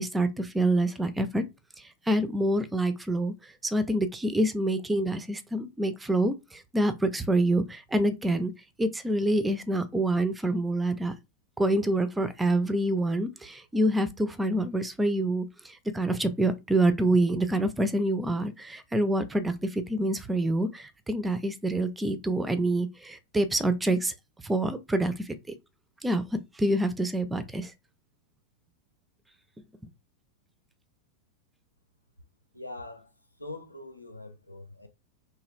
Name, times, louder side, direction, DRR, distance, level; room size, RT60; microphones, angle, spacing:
voice 1, 0.0-1.5 1.8-8.5 8.8-11.1 11.6-24.1 24.4-25.3 26.0-26.2 26.6-27.7, right 1 dB, 10° right, 0.4 m, -27 dB
voice 2, 32.5-33.1 33.4-34.9, left 2 dB, 85° left, 0.5 m, -42 dB
3.1 x 2.3 x 3.1 m
figure-of-eight pair, 90°, 0 cm